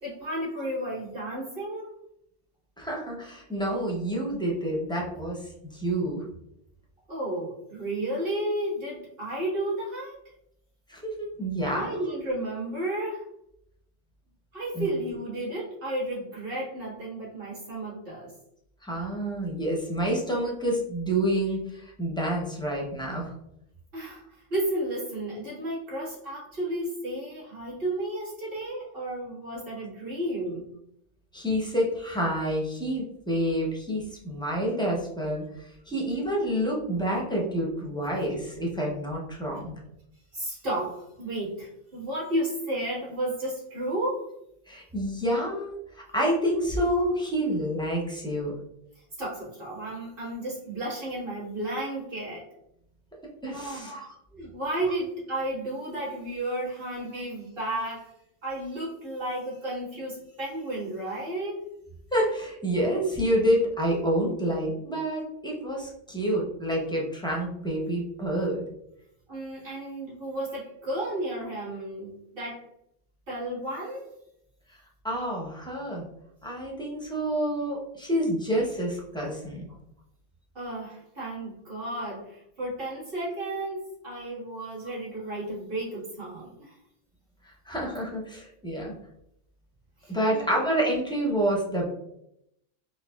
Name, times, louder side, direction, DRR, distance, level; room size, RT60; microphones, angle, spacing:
voice 1, 0.0-1.9 7.1-10.2 11.6-13.3 14.5-18.3 23.9-30.7 40.3-44.3 49.2-52.4 53.5-53.9 54.3-58.1 58.4-61.6 69.3-72.6 73.3-74.1 80.5-86.8 90.0-90.5, right 1 dB, 50° right, -7 dB, 1.7 m, -33 dB
voice 2, 2.8-6.2 10.9-11.9 14.7-14.8 18.8-23.3 31.3-35.4 35.9-39.7 44.7-48.5 53.4-54.1 62.1-68.6 75.0-76.1 76.4-79.7 87.7-88.9 90.1-91.9, right 1 dB, 5° left, -3 dB, 0.4 m, -28 dB
4.0 x 2.6 x 2.3 m, 0.78 s
omnidirectional pair, 1.2 m